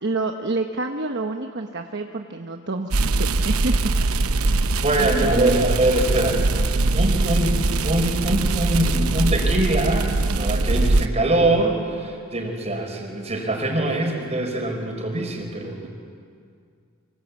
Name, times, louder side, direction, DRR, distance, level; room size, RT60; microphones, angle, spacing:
voice 1, 0.0-3.9 4.5-5.6, right 2 dB, 55° right, 4 dB, 1.1 m, -28 dB
sound 1, 2.9-11.1, right 2 dB, 85° right, 0.9 m, -22 dB
voice 2, 4.8-6.5 6.9-15.9, right 1 dB, 30° right, 2 dB, 5.0 m, -23 dB
26.5 x 24.5 x 8.4 m, 2.2 s
head